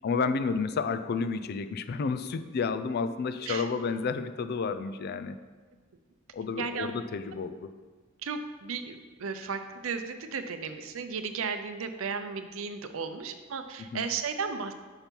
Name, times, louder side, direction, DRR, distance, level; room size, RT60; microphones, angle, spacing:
voice 1, 0.0-5.4 6.3-7.7 13.9-14.0, left 5 dB, 50° left, 11 dB, 0.3 m, -31 dB
voice 2, 6.6-6.9 8.2-14.8, right 5 dB, 75° right, 8 dB, 0.5 m, -35 dB
5.6 x 4.5 x 5.2 m, 1.4 s
head